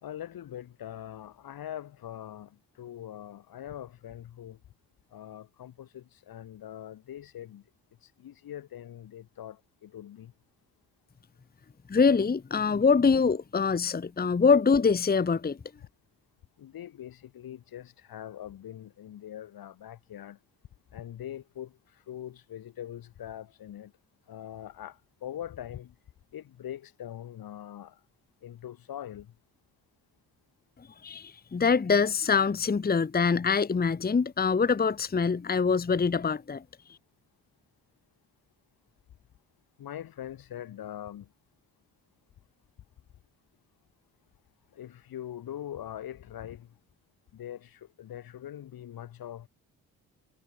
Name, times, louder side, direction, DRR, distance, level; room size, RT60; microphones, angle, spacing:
voice 1, 0.0-4.6 5.1-7.6 8.0-10.3 16.6-20.4 20.9-23.9 24.3-25.9 26.3-28.0 28.4-29.3 39.8-41.3 44.7-46.8 47.3-49.5, left 11 dB, 65° left, 1.9 m, -42 dB
voice 2, 11.9-15.6 31.0-36.6, left 5 dB, 25° left, 1.0 m, -24 dB
hypercardioid pair, 50°, 39 cm